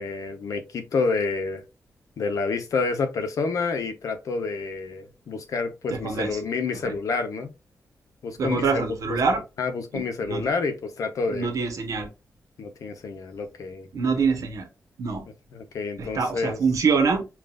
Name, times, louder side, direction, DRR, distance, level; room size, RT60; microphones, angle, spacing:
voice 1, 0.0-1.6 2.2-7.5 8.2-9.2 9.6-11.5 12.6-13.9 15.5-16.6, left 4 dB, 75° left, 0.9 m, -28 dB
voice 2, 5.9-6.4 6.7-6.9 8.4-9.4 9.9-10.4 11.3-12.1 13.9-14.7 15.0-15.3 16.0-17.3, right 5 dB, 75° right, 1.1 m, -25 dB
5.9 x 2.5 x 2.4 m
wide cardioid pair, 165°, 6 cm